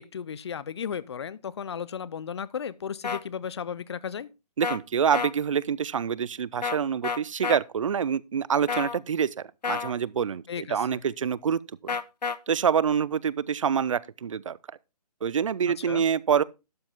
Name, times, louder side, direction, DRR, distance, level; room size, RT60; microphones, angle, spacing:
voice 1, 0.0-4.3 10.5-11.0 15.8-16.0, left 7 dB, 40° left, 0.6 m, -35 dB
sound 1, 3.0-3.2 4.6-4.8 5.1-5.3 6.6-6.8 7.0-7.6 8.7-9.0 9.6-9.9 11.9-12.4, left 5 dB, 80° left, 0.9 m, -29 dB
voice 2, 4.6-9.3 9.7-10.4 10.7-12.0 12.5-14.6 15.2-16.4, right 7 dB, 50° right, 0.5 m, -26 dB
12.0 x 8.0 x 3.6 m
hypercardioid pair, 160°, 21 cm